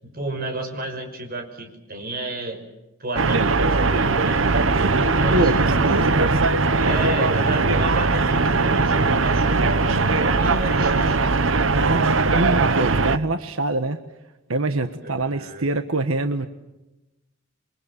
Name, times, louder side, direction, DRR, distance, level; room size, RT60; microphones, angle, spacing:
voice 1, 0.0-2.6 3.0-5.8 6.8-11.2 15.0-15.7, right 1 dB, 45° right, 5 dB, 5.8 m, -32 dB
sound 1, 3.2-13.2, right 3 dB, 65° right, 1.1 m, -20 dB
voice 2, 5.3-6.4 11.7-14.0 14.5-16.5, right 2 dB, 85° right, 9 dB, 1.4 m, -24 dB
28.5 x 24.0 x 7.4 m, 0.96 s
head